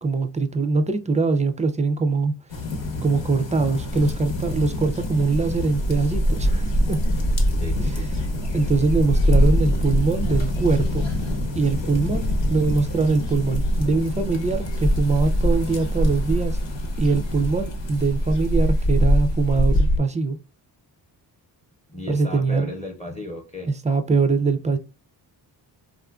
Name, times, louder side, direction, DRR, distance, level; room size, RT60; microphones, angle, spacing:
voice 1, 0.0-2.3 3.0-7.0 7.8-8.0 8.5-11.0 11.5-16.6 17.0-20.4 22.1-22.7 23.6-24.8, right 4 dB, 15° right, 0.3 m, -22 dB
sound 1, 2.5-19.8, left 2 dB, 85° left, 1.0 m, -30 dB
sound 2, 3.9-20.0, equal, 65° left, 0.9 m, -24 dB
voice 2, 7.6-8.1 21.9-23.7, left 1 dB, 15° left, 0.7 m, -35 dB
3.6 x 2.4 x 2.3 m
cardioid pair, 85°, 45 cm